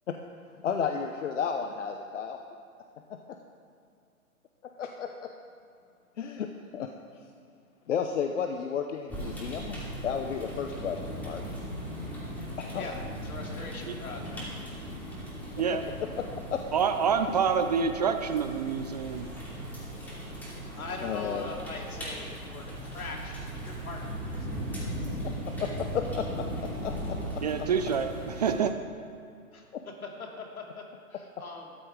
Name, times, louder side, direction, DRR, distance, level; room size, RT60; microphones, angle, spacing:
voice 1, 0.6-2.4 4.8-5.3 6.2-6.9 7.9-9.8 10.0-11.4 12.6-12.8 16.2-16.3 16.5-16.6 21.0-21.4 25.6-26.5 26.8-27.2, left 7 dB, 55° left, 5 dB, 0.9 m, -32 dB
sound 1, 9.1-28.6, equal, 5° left, 2.7 m, -38 dB
voice 2, 12.8-14.4 20.6-25.2 29.5-30.8 31.1-31.8, left 3 dB, 75° left, 0 dB, 2.7 m, -42 dB
voice 3, 16.7-19.3 27.4-28.7, right 6 dB, 30° right, 8 dB, 0.4 m, -27 dB
sound 2, 18.2-28.1, right 2 dB, 15° right, 3.2 m, -45 dB
13.5 x 10.5 x 4.8 m, 2.4 s
figure-of-eight pair, 125°, 44 cm